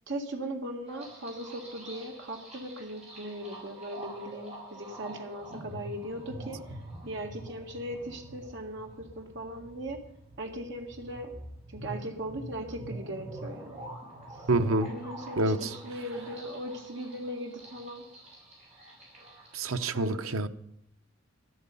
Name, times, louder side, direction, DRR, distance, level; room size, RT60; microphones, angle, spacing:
voice 1, 0.1-6.8 7.0-10.0 10.4-11.3 11.7-13.8 14.9-18.0 19.9-20.3, right 1 dB, 60° right, 2 dB, 2.0 m, -38 dB
sound 1, 0.9-19.9, right 1 dB, 30° right, 6.4 m, -46 dB
voice 2, 14.5-14.9 15.4-15.6 19.5-20.5, right 2 dB, 90° right, 9 dB, 0.8 m, -26 dB
13.0 x 12.5 x 5.5 m, 0.74 s
head